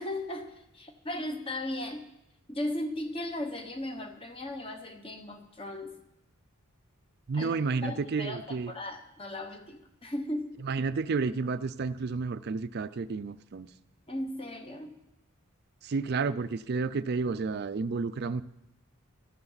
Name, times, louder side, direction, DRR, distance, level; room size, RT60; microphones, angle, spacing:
voice 1, 0.0-2.0 2.5-6.0 7.3-10.6 14.1-14.9, left 1 dB, 25° left, 5 dB, 1.2 m, -37 dB
voice 2, 7.3-8.7 10.6-13.7 15.8-18.4, right 4 dB, 50° right, 11 dB, 0.4 m, -31 dB
15.5 x 14.0 x 4.0 m, 0.87 s
head